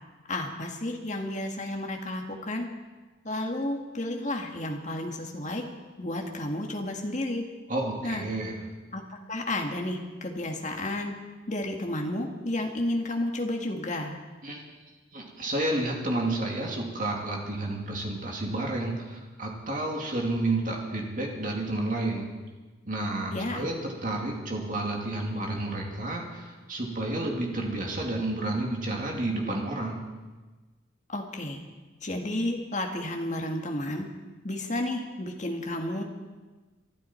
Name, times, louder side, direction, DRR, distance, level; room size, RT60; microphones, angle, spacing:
voice 1, 0.3-2.7 3.2-5.7 6.0-7.4 8.0-8.2 8.9-11.1 11.5-14.2 23.3-23.6 31.1-31.6 32.0-34.1 34.4-36.0, left 1 dB, 40° left, 2 dB, 1.8 m, -32 dB
voice 2, 7.7-8.6 14.4-14.6 15.1-22.3 22.9-30.0, right 2 dB, 45° right, -1 dB, 2.7 m, -30 dB
23.5 x 12.5 x 4.5 m, 1.3 s
head